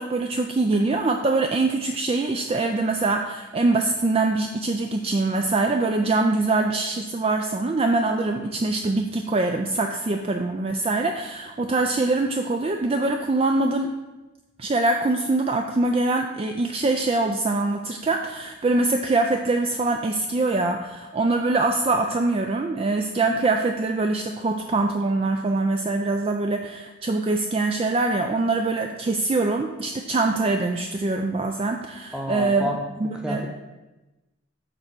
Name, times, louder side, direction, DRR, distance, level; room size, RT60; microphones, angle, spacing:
voice 1, 0.0-13.9 14.6-32.7 33.0-33.4, right 3 dB, 30° right, 4 dB, 0.3 m, -23 dB
voice 2, 32.1-32.8 33.0-33.5, left 1 dB, 5° right, 1 dB, 0.8 m, -29 dB
6.7 x 4.2 x 6.0 m, 1.1 s
head